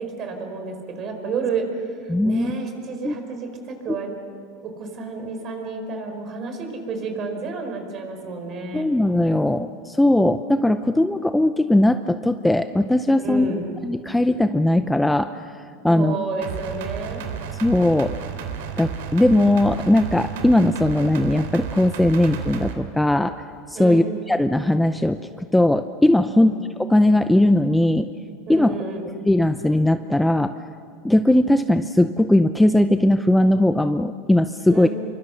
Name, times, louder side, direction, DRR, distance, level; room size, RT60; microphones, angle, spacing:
voice 1, 0.0-1.7 2.0-4.1 4.6-8.8 13.2-13.7 15.9-17.2 23.7-24.1 26.3-26.6 28.5-29.1 34.7-34.9, right 4 dB, 35° right, 5 dB, 4.9 m, -30 dB
voice 2, 2.1-2.5 3.0-3.1 8.7-13.5 13.8-15.5 15.8-16.2 17.6-18.2 18.8-23.3 23.7-28.1 28.5-28.8 29.2-30.5 31.0-34.9, left 1 dB, 5° left, 9 dB, 0.6 m, -19 dB
sound 1, 16.4-22.7, right 7 dB, 80° right, 3.0 m, -32 dB
27.5 x 24.0 x 6.5 m, 2.3 s
supercardioid pair, 140°, 0 cm